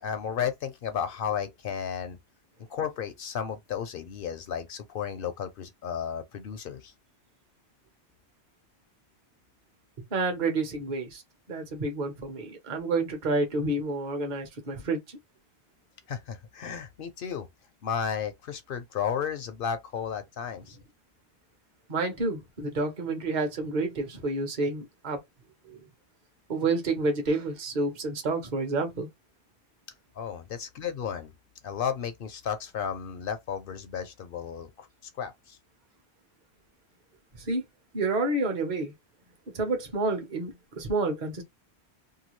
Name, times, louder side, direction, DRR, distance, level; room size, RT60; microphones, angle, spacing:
voice 1, 0.0-2.2 2.7-6.9 16.1-17.5 17.8-20.8 30.2-31.3 31.6-34.9 35.2-35.6, left 7 dB, 65° left, 0.7 m, -33 dB
voice 2, 10.1-11.2 11.5-15.2 21.9-25.2 25.6-25.8 26.5-29.1 37.4-37.6 37.9-38.9 39.5-41.4, right 3 dB, 45° right, 0.9 m, -29 dB
2.8 x 2.3 x 3.0 m
omnidirectional pair, 1.1 m